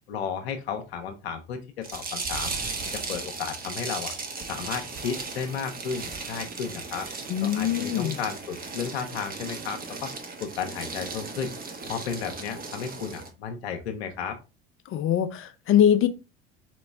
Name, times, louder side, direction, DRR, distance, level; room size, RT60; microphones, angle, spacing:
voice 1, 0.1-2.5 2.9-4.1 4.5-7.1 7.4-10.1 10.4-11.5 11.8-14.4, left 6 dB, 75° left, 0.8 m, -33 dB
sound 1, 1.8-13.3, right 4 dB, 30° right, 1.0 m, -36 dB
voice 2, 7.3-8.2 14.9-16.1, left 10 dB, 40° left, 0.6 m, -22 dB
4.4 x 3.0 x 3.4 m
figure-of-eight pair, 65°, 32 cm